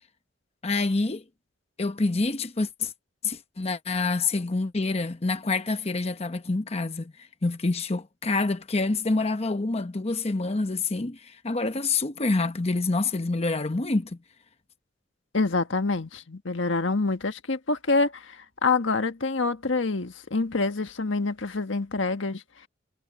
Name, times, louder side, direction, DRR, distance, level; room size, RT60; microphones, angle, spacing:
voice 1, 0.6-1.2 1.8-2.9 3.2-14.2, left 3 dB, 35° left, 0.9 m, -27 dB
voice 2, 15.3-22.4, left 3 dB, 85° left, 1.5 m, -26 dB
head